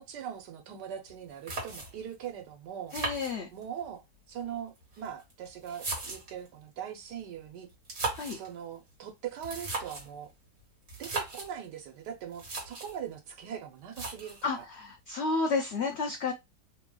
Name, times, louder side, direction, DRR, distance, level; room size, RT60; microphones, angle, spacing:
voice 1, 0.0-2.9 3.5-7.7 8.3-10.3 11.0-14.6, right 9 dB, 90° right, 1.4 m, -41 dB
sound 1, 1.1-1.2 1.5-2.1 2.9-3.9 4.8-6.5 7.7-8.5 9.3-10.1 10.9-11.5 12.1-12.2 12.3-13.0 13.9-14.5, right 3 dB, 50° right, 1.6 m, -37 dB
voice 2, 2.9-3.5 8.1-8.4 14.4-16.3, left 4 dB, 80° left, 0.6 m, -31 dB
3.2 x 2.3 x 3.6 m
omnidirectional pair, 1.7 m